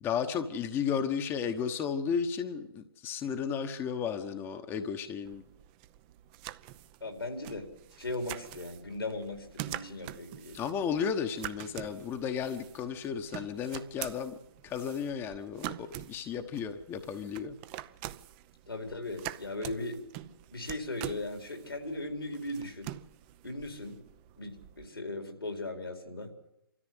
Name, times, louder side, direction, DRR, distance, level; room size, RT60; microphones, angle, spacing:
voice 1, 0.0-5.4 10.5-14.3 14.6-17.6, left 7 dB, 20° left, 7 dB, 1.1 m, -33 dB
sound 1, 5.2-24.9, right 15 dB, 30° right, 0.7 m, -45 dB
voice 2, 7.0-7.6 8.0-10.7 18.7-22.9 23.4-24.0 24.4-26.3, left 2 dB, 85° left, 4 dB, 4.4 m, -38 dB
27.0 x 14.0 x 7.9 m, 0.86 s
figure-of-eight pair, 130°, 12 cm